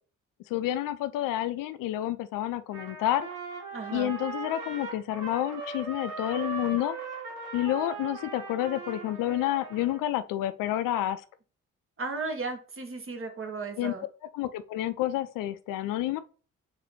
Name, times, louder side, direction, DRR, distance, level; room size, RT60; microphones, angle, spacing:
voice 1, 0.5-3.3 3.9-7.0 7.5-11.2 13.8-13.9 14.3-16.2, left 13 dB, 60° left, 0.5 m, -29 dB
Trumpet, 2.7-10.0, right 4 dB, 55° right, 1.5 m, -39 dB
voice 2, 3.7-4.1 12.0-14.1, right 4 dB, 35° right, 1.2 m, -35 dB
4.0 x 2.7 x 4.1 m
hypercardioid pair, 40°, 38 cm